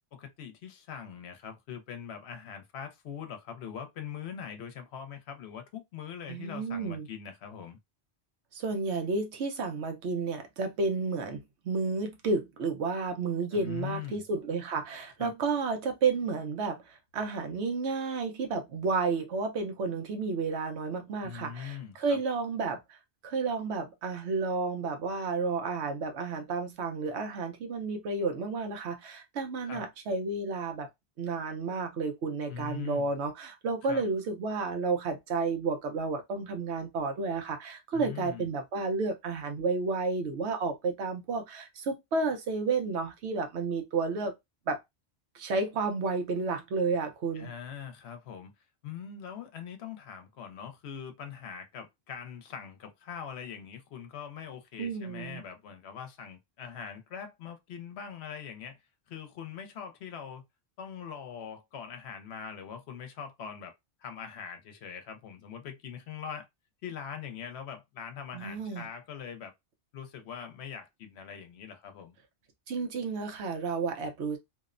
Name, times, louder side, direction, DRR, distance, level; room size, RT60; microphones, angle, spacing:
voice 1, 0.1-7.8 13.5-14.2 15.2-15.3 21.2-22.2 29.6-29.8 32.5-33.1 33.8-34.1 37.9-38.4 47.3-48.5 48.8-58.8 59.1-60.4 60.8-63.7 64.0-66.5 66.8-69.5 69.9-72.2, left 7 dB, 75° left, 0.9 m, -42 dB
voice 2, 6.3-7.1 8.5-23.0 23.2-30.9 31.2-44.3 44.7-44.8 45.3-47.5 54.8-55.4 68.3-68.8 72.7-74.4, right 4 dB, 80° right, 1.0 m, -31 dB
2.7 x 2.0 x 2.4 m
omnidirectional pair, 1.1 m